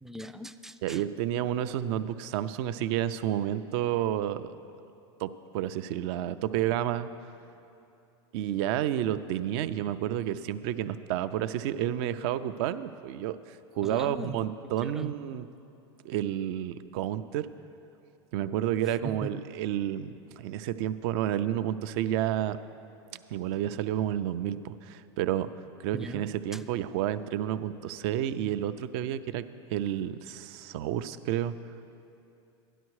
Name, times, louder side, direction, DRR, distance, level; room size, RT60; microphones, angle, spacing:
voice 1, 0.0-1.0 13.8-14.4 14.8-15.1 18.9-19.3 25.9-26.7, right 1 dB, 5° right, 9 dB, 0.3 m, -40 dB
voice 2, 0.8-4.5 5.2-7.1 8.3-15.5 16.0-17.5 18.3-22.6 23.3-25.5 25.8-29.4 29.7-31.5, right 11 dB, 60° right, 12 dB, 0.5 m, -30 dB
13.0 x 11.0 x 4.7 m, 2.7 s
supercardioid pair, 120°, 15 cm